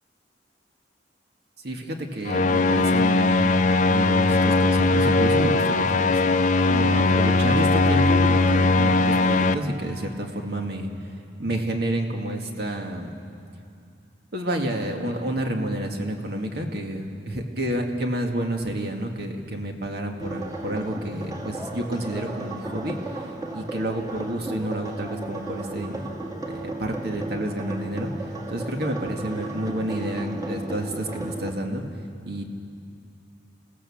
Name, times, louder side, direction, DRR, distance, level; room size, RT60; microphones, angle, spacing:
voice 1, 1.6-6.2 6.6-11.1 11.4-13.1 14.3-23.0 23.5-26.1 26.5-28.1 28.5-31.8 32.2-32.4, right 1 dB, 60° right, 3 dB, 2.1 m, -29 dB
sound 1, 2.2-9.5, left 3 dB, 45° left, 0.7 m, -20 dB
sound 2, 20.2-31.5, right 2 dB, 20° right, 2.2 m, -35 dB
28.5 x 16.5 x 7.3 m, 2.5 s
head